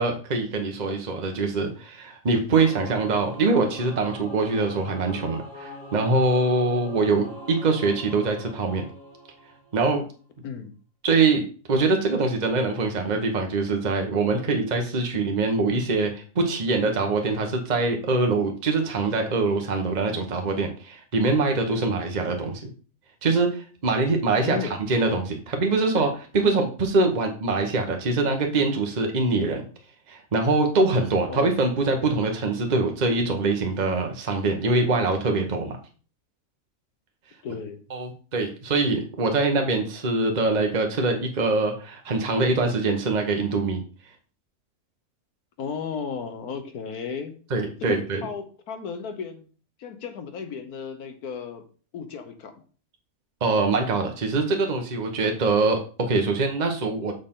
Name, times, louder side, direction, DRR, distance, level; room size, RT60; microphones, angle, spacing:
voice 1, 0.0-8.8 9.7-10.0 11.0-11.4 11.7-22.7 23.2-29.6 30.1-35.8 37.9-43.8 47.5-48.3 53.4-57.1, right 3 dB, 30° right, 3 dB, 1.1 m, -24 dB
Singing / Musical instrument, 2.5-10.0, equal, 60° left, 2.8 m, -42 dB
voice 2, 10.4-10.7 24.4-24.8 31.3-31.7 37.4-37.8 45.6-47.4 47.8-49.5 49.8-51.6 51.9-52.5, left 6 dB, 85° left, 8 dB, 1.5 m, -34 dB
6.6 x 6.6 x 3.7 m, 0.39 s
omnidirectional pair, 1.6 m